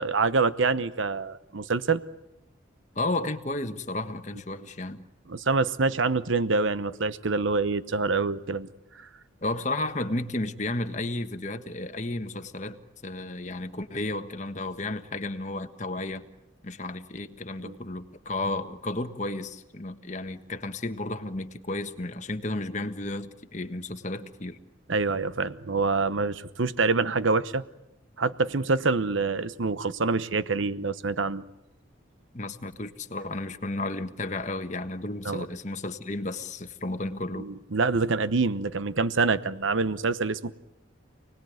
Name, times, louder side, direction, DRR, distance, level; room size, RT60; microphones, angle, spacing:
voice 1, 0.0-2.0 5.3-8.7 17.6-17.7 24.9-27.6 28.2-31.4 35.2-35.5 37.4-40.5, right 4 dB, 75° right, 15 dB, 0.9 m, -26 dB
voice 2, 2.9-5.0 9.4-12.8 13.0-16.2 16.6-24.6 32.3-37.4, left 2 dB, 35° left, 7 dB, 1.5 m, -33 dB
29.0 x 19.5 x 9.4 m, 0.89 s
head